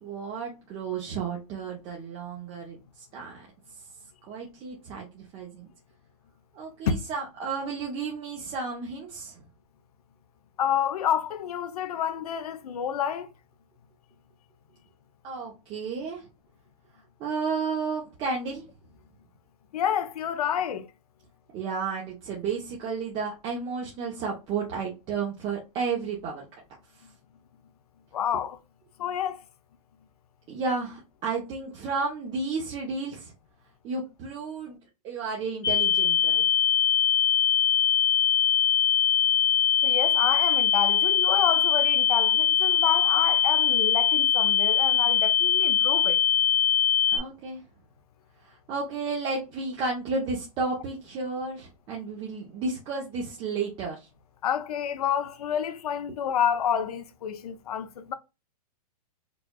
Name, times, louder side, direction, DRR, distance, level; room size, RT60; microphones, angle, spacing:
voice 1, 0.0-2.8 3.1-3.5 4.3-5.7 6.5-9.4 15.2-16.2 17.2-18.7 21.5-26.4 30.5-33.3 33.8-34.8 35.0-36.4 47.1-47.6 48.4-54.1, right 4 dB, 25° right, 0.9 m, -32 dB
voice 2, 10.6-13.3 19.7-20.9 28.1-28.6 29.0-29.4 39.8-46.2 54.4-58.1, left 9 dB, 70° left, 0.7 m, -29 dB
sound 1, 35.6-47.2, left 9 dB, 20° left, 0.9 m, -22 dB
5.0 x 2.4 x 2.3 m
hypercardioid pair, 145°, 20 cm